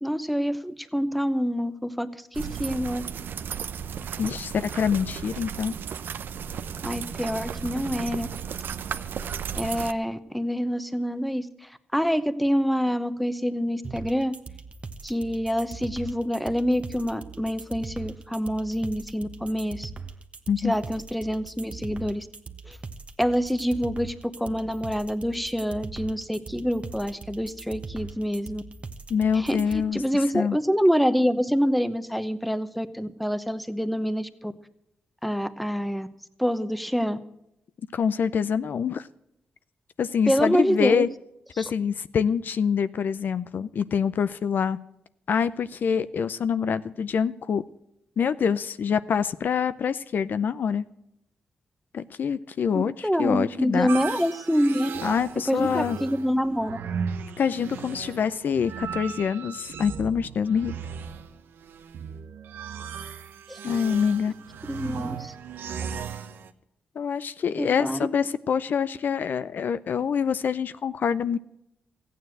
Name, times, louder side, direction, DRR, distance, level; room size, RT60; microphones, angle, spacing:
voice 1, 0.0-3.0 6.8-8.3 9.6-11.5 11.9-14.3 15.0-19.9 20.6-22.3 22.7-22.8 23.2-24.1 24.4-28.6 29.3-34.5 35.2-36.1 36.4-37.2 40.3-41.0 41.6-41.7 52.7-54.9 55.5-56.8 63.5-63.6 64.7-65.3 67.6-68.1, equal, ahead, 13 dB, 0.9 m, -26 dB
sound 1, 2.3-9.9, right 7 dB, 75° right, 0.6 m, -34 dB
voice 2, 4.2-5.7 20.5-20.7 29.1-30.0 30.3-30.6 37.9-39.1 40.0-41.1 41.6-44.8 45.3-47.6 48.2-50.8 51.9-53.9 55.0-56.0 57.4-60.7 63.6-64.3 67.0-71.4, left 7 dB, 65° left, 14 dB, 0.5 m, -25 dB
sound 2, 13.8-29.8, right 4 dB, 35° right, 1.1 m, -40 dB
sound 3, 53.9-66.5, right 7 dB, 90° right, 0.9 m, -37 dB
14.5 x 9.3 x 7.8 m, 0.81 s
cardioid pair, 80°, 4 cm